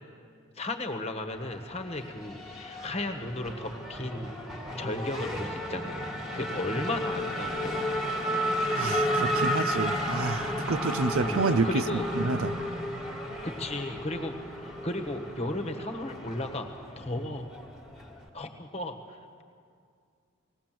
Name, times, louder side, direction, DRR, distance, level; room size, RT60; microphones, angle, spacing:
voice 1, 0.6-4.3 4.8-8.0 11.2-12.0 13.4-14.3 14.6-16.7 17.0-17.5 18.3-18.9, left 1 dB, 30° left, 5 dB, 1.4 m, -35 dB
Race car auto racing / Accelerating revving vroom, 1.3-18.3, equal, ahead, 1.8 m, -33 dB
voice 2, 8.8-11.8 12.2-12.5, right 4 dB, 75° right, 13 dB, 0.6 m, -28 dB
19.0 x 18.0 x 7.6 m, 2.2 s
head